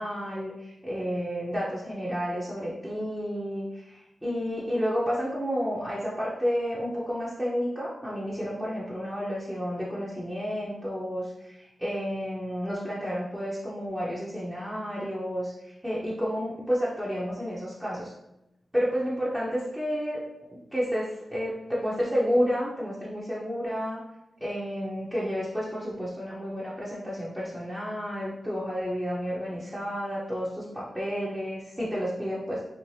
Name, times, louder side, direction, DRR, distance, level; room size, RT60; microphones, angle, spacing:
voice 1, 0.0-18.1 18.7-20.2 20.5-24.0 24.4-32.6, equal, 5° right, -7 dB, 0.7 m, -31 dB
2.6 x 2.1 x 3.2 m, 0.89 s
cardioid pair, 40°, 0 cm